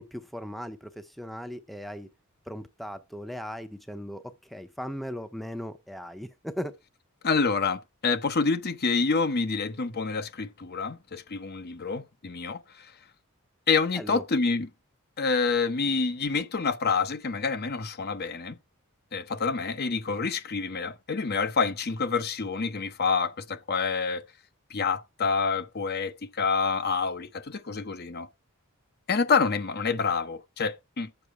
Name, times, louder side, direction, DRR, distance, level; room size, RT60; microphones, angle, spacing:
voice 1, 0.0-2.1 2.5-6.8 13.9-14.2, equal, ahead, 0.6 m, -38 dB
voice 2, 7.2-12.9 13.7-14.7 15.2-18.6 19.1-24.2 24.7-28.3 29.1-31.1, left 4 dB, 45° left, 0.9 m, -27 dB
9.0 x 7.0 x 4.7 m
head